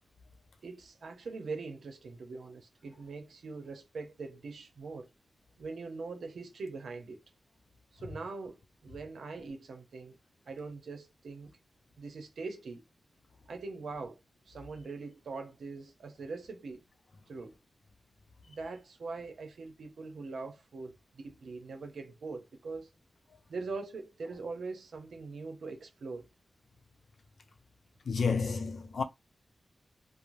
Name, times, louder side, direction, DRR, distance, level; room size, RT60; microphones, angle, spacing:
voice 1, 0.6-5.1 5.6-7.2 7.9-10.2 10.5-11.5 12.0-12.8 13.5-14.2 14.5-16.8 17.3-17.5 18.5-22.9 23.5-26.3, right 4 dB, 85° right, 0.7 m, -42 dB
voice 2, 28.1-29.0, left 5 dB, 60° left, 0.5 m, -30 dB
2.5 x 2.0 x 3.1 m
wide cardioid pair, 145°, 0 cm